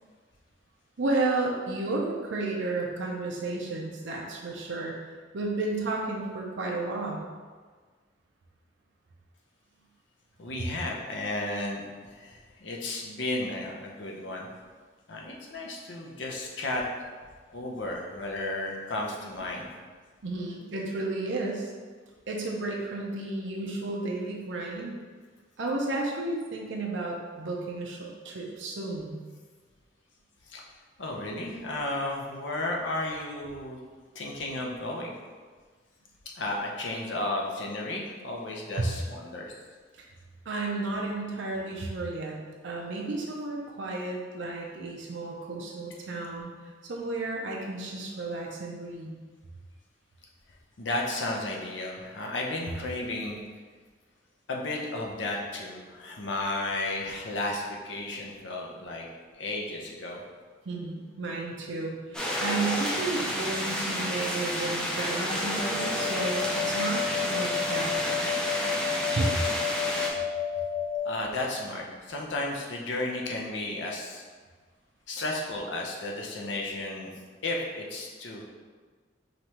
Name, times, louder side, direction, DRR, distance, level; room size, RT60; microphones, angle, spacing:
voice 1, 1.0-5.0 5.3-7.2 20.2-21.7 22.3-25.0 25.6-29.1 38.8-38.9 40.5-42.4 42.6-49.1 60.6-68.3 69.2-69.3, right 2 dB, 75° right, -2 dB, 0.6 m, -32 dB
voice 2, 10.4-14.5 15.1-16.8 17.5-19.7 30.5-30.6 31.0-33.8 34.1-35.2 36.4-39.5 50.8-53.4 54.5-59.1 59.3-60.2 71.0-74.2 75.1-77.1 77.4-78.4, left 2 dB, 75° left, -1 dB, 0.7 m, -33 dB
sound 1, 62.1-70.1, equal, 5° left, 0.4 m, -30 dB
sound 2, 65.6-71.0, left 7 dB, 30° left, 1.4 m, -31 dB
5.1 x 3.1 x 2.9 m, 1.5 s
head